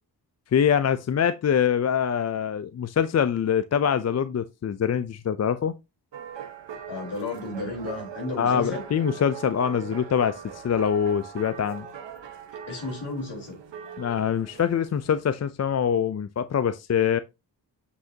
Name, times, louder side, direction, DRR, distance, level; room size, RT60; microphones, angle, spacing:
voice 1, 0.5-5.8 8.4-11.9 14.0-17.2, left 8 dB, 40° left, 0.5 m, -24 dB
sound 1, 6.1-15.3, right 7 dB, 80° right, 1.3 m, -41 dB
voice 2, 6.9-8.8 12.7-13.6, left 2 dB, 65° left, 4.5 m, -33 dB
8.2 x 5.1 x 2.8 m
cardioid pair, 90°, 43 cm